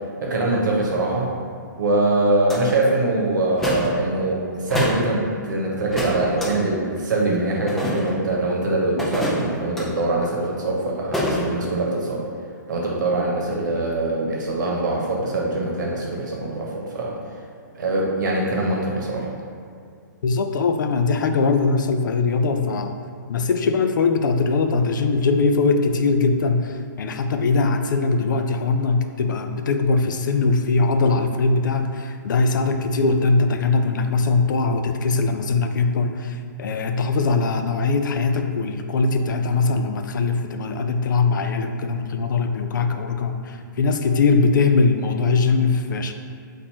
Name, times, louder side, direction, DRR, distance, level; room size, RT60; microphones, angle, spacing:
voice 1, 0.2-1.3 1.8-12.2 12.7-17.1 17.7-19.3, right 2 dB, 65° right, -2 dB, 1.1 m, -23 dB
sound 1, 2.5-2.6 3.6-3.9 4.7-5.0 5.9-6.5 7.7-8.2 9.0-9.8 11.1-11.4, left 1 dB, 5° left, 0.5 m, -25 dB
voice 2, 20.2-23.0 23.3-46.1, left 4 dB, 70° left, 6 dB, 0.4 m, -21 dB
4.2 x 2.6 x 4.4 m, 2.2 s
hypercardioid pair, 155°, 11 cm